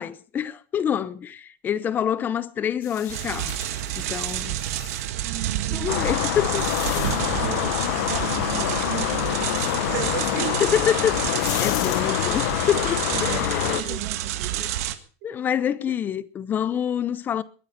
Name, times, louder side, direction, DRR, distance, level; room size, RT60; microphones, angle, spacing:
voice 1, 0.0-3.5 4.0-4.6 5.7-7.2 10.6-14.0 15.2-17.4, left 9 dB, 25° left, 0.8 m, -27 dB
sound 1, 2.8-5.1 5.9-7.5 10.5-10.6 11.1-12.0, left 10 dB, 45° left, 3.7 m, -36 dB
sound 2, 3.1-15.0, right 13 dB, 75° right, 1.8 m, -30 dB
voice 2, 5.2-6.3 7.1-10.6 13.1-14.7 15.2-15.3 15.9-16.1, right 16 dB, 55° right, 1.1 m, -35 dB
sound 3, 5.9-13.8, left 15 dB, 75° left, 1.3 m, -26 dB
21.5 x 9.5 x 5.6 m
supercardioid pair, 165°, 8 cm